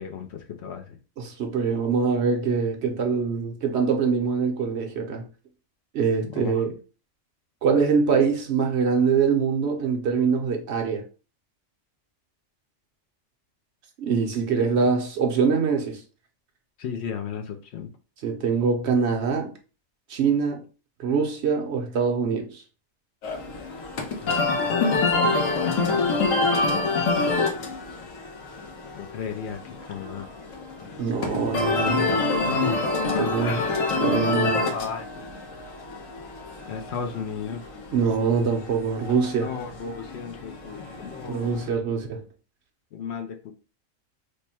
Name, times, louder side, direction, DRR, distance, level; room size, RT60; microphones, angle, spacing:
voice 1, 0.0-1.0 6.2-6.6 16.8-17.9 24.2-24.3 24.6-24.8 28.9-30.3 32.4-33.8 34.4-35.3 36.7-37.6 39.4-41.6 42.9-43.5, left 6 dB, 65° left, 0.8 m, -35 dB
voice 2, 1.2-5.2 5.9-6.7 7.6-11.0 14.0-16.0 18.2-19.5 20.1-20.6 21.0-22.6 31.0-32.1 32.7-32.8 33.2-33.6 34.0-34.7 37.9-39.5 41.3-42.2, right 5 dB, 60° right, 0.9 m, -24 dB
sound 1, 23.2-41.7, left 3 dB, 85° left, 1.2 m, -27 dB
3.3 x 2.1 x 4.2 m
omnidirectional pair, 1.3 m